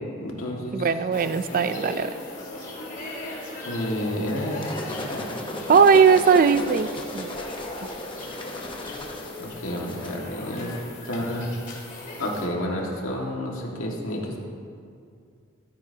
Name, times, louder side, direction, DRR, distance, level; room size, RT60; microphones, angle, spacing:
voice 1, 0.2-0.8 3.7-5.3 9.4-10.7 11.1-11.5 12.2-14.4, left 1 dB, 85° left, -1 dB, 1.9 m, -30 dB
voice 2, 0.7-2.2 5.7-6.9 7.1-7.3, right 6 dB, 45° right, 13 dB, 0.4 m, -18 dB
sound 1, 0.9-10.8, left 1 dB, 60° left, 2.7 m, -43 dB
sound 2, 1.1-12.4, left 2 dB, 40° left, 2.1 m, -39 dB
sound 3, 4.3-10.1, left 2 dB, 25° left, 1.0 m, -36 dB
14.0 x 13.5 x 2.8 m, 2.3 s
head